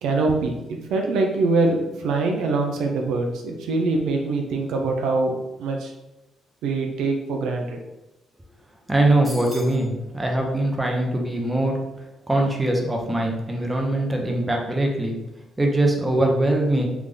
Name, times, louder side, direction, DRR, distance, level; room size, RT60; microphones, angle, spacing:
voice 1, 0.0-5.9 6.6-7.8, right 3 dB, 85° right, 2 dB, 0.5 m, -24 dB
voice 2, 8.9-11.8 12.3-15.1 15.6-16.9, right 1 dB, 15° right, 1 dB, 0.7 m, -22 dB
sound 1, 9.2-9.9, right 1 dB, 35° right, 1.0 m, -39 dB
3.4 x 2.4 x 3.7 m, 0.97 s
cardioid pair, 90°, 0 cm